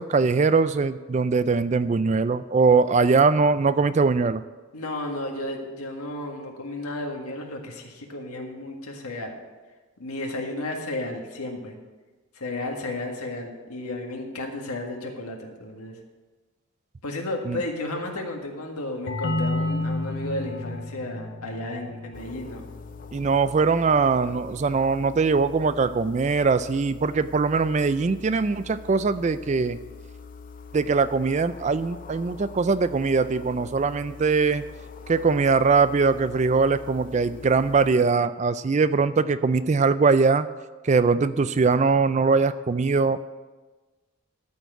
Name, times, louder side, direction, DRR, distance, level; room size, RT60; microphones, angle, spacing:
voice 1, 0.0-4.4 17.5-17.6 23.1-29.8 30.7-34.6 35.1-40.5 40.8-43.2, right 4 dB, 30° right, 14 dB, 0.3 m, -21 dB
voice 2, 4.7-9.4 10.0-11.8 12.3-16.0 17.0-22.6, left 2 dB, 90° left, 2 dB, 1.8 m, -33 dB
sound 1, 19.1-24.5, left 2 dB, 55° left, 0.9 m, -32 dB
sound 2, 22.1-37.9, left 5 dB, 35° left, 0.5 m, -44 dB
13.0 x 4.5 x 8.1 m, 1.3 s
head